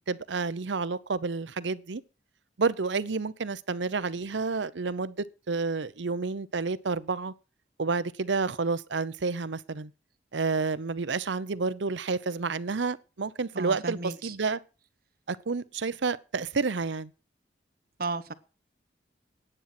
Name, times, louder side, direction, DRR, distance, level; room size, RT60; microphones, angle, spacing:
voice 1, 0.1-2.0 2.6-7.3 7.8-9.9 10.3-14.6 15.3-17.1, right 4 dB, 90° right, 0.7 m, -30 dB
voice 2, 13.5-14.3 18.0-18.3, right 3 dB, 55° right, 1.0 m, -34 dB
10.0 x 9.1 x 5.9 m
head